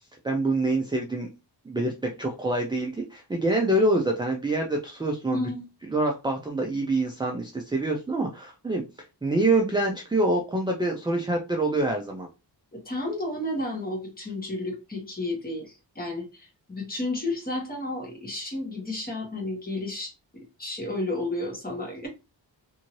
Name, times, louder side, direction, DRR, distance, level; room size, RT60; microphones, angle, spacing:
voice 1, 0.2-1.3 1.7-5.4 5.9-8.8 9.2-12.3, right 2 dB, 10° right, 1 dB, 0.3 m, -26 dB
voice 2, 5.3-5.7 12.7-22.1, left 2 dB, 20° left, -1 dB, 1.2 m, -32 dB
2.6 x 2.6 x 2.9 m, 0.28 s
wide cardioid pair, 160°, 45 cm